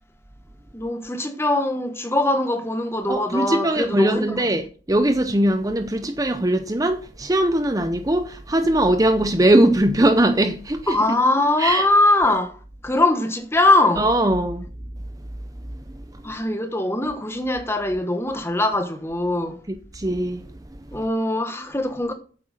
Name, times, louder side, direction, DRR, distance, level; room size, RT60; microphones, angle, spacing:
voice 1, 0.7-4.3 10.9-12.6 12.8-14.0 16.2-19.6 20.9-22.1, left 2 dB, 10° left, 1.2 m, -21 dB
voice 2, 3.1-11.2 11.6-11.9 14.0-14.7 15.7-15.8 16.1-16.2 19.9-20.9, right 1 dB, 20° right, 0.6 m, -21 dB
8.8 x 8.0 x 6.4 m
head